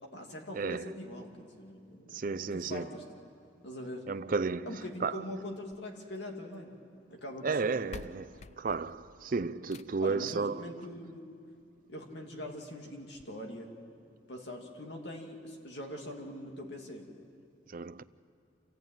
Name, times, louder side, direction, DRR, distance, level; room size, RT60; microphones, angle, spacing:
voice 1, 0.0-2.3 2.5-3.0 3.6-4.1 4.6-6.7 7.1-7.8 10.0-11.3 11.9-13.7 14.3-17.1, left 1 dB, 65° left, 2.5 m, -42 dB
voice 2, 0.5-0.9 2.1-2.9 4.1-5.2 7.4-10.7 17.7-18.0, right 4 dB, 45° right, 0.5 m, -33 dB
sound 1, 5.5-6.7 7.5-7.6 7.9-10.2 11.5-11.6 12.1-12.2 12.5-12.6 13.1-13.3, left 4 dB, 35° left, 0.4 m, -51 dB
28.0 x 14.5 x 9.1 m
head